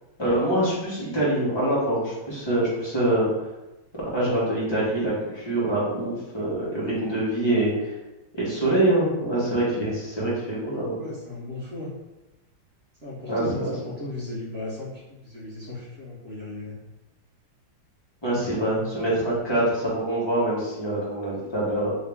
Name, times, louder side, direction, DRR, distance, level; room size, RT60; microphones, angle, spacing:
voice 1, 0.2-3.3 4.1-7.9 8.3-11.0 13.3-13.7 18.2-21.9, right 1 dB, 15° left, -8 dB, 1.0 m, -25 dB
voice 2, 11.0-11.9 13.0-16.8, left 2 dB, 45° right, -7 dB, 0.9 m, -36 dB
3.7 x 2.8 x 3.5 m, 1.0 s
omnidirectional pair, 2.1 m